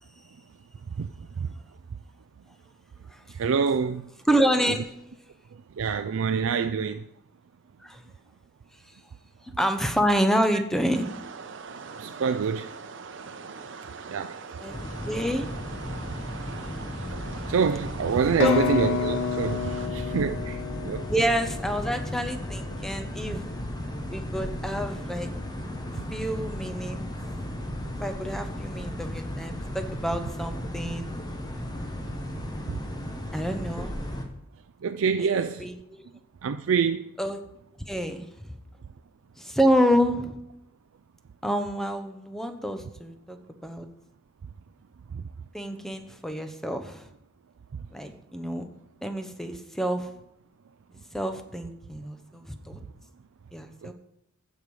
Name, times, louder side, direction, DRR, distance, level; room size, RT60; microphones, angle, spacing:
voice 1, 0.9-1.5 3.3-4.1 5.5-7.1 12.0-12.8 14.1-14.4 17.5-21.1 32.7-32.8 34.8-35.7 36.4-37.1 45.1-45.2 53.8-53.9, right 6 dB, 85° right, 0.4 m, -27 dB
voice 2, 4.3-4.9 7.8-8.0 9.4-11.1 14.6-14.7 15.0-15.5 18.4-19.0 21.1-23.4 24.1-25.3 26.1-27.0 28.0-31.1 33.3-33.9 35.2-36.1 37.2-37.4 37.9-38.5 39.4-40.4 41.4-43.9 45.5-47.1 47.9-48.7 49.0-50.1 50.9-52.8 53.5-53.9, equal, ahead, 0.9 m, -28 dB
sound 1, 10.9-19.9, right 5 dB, 65° right, 0.8 m, -42 dB
sound 2, 14.7-34.3, left 1 dB, 20° left, 1.2 m, -35 dB
sound 3, 18.4-22.2, left 5 dB, 60° left, 0.5 m, -29 dB
15.5 x 5.5 x 4.8 m
head